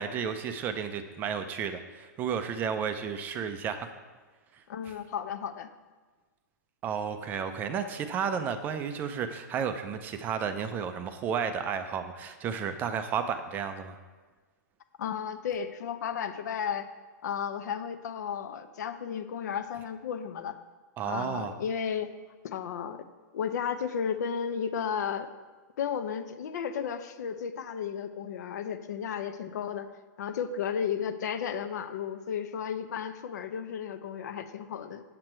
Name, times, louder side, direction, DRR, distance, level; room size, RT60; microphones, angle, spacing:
voice 1, 0.0-3.9 6.8-14.0 21.0-21.5, right 7 dB, 15° right, 8 dB, 0.4 m, -32 dB
voice 2, 4.7-5.7 15.0-16.9 17.2-20.6 21.0-22.1 22.4-23.0 23.3-25.3 25.8-29.9 30.2-35.0, left 7 dB, 65° left, 10 dB, 0.7 m, -33 dB
7.9 x 7.5 x 4.4 m, 1.3 s
hypercardioid pair, 165°, 10 cm